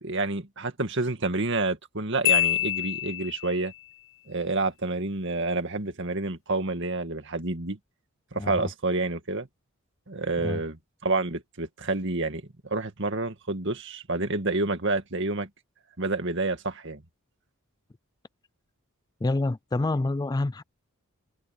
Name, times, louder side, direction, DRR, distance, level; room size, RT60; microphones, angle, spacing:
voice 1, 0.0-3.7 4.3-7.8 8.3-9.5 10.1-15.5 16.0-17.0, right 2 dB, 55° right, 2.1 m, -29 dB
Marimba xylophone, 2.3-3.7, left 16 dB, 60° left, 0.8 m, -26 dB
voice 2, 19.2-20.6, left 2 dB, 15° left, 0.3 m, -27 dB
head